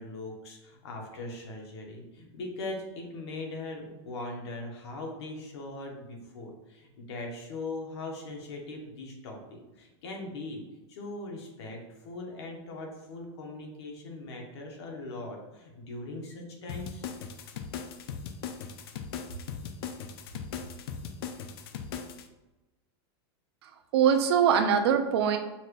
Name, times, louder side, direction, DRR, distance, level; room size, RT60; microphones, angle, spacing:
voice 1, 0.0-10.6 10.9-17.1, left 2 dB, 80° left, 1 dB, 1.3 m, -40 dB
sound 1, 16.7-22.2, left 7 dB, 60° left, 0.5 m, -39 dB
voice 2, 23.6-25.4, right 8 dB, 70° right, 7 dB, 0.6 m, -23 dB
5.7 x 2.5 x 3.2 m, 1.1 s
supercardioid pair, 175°, 14 cm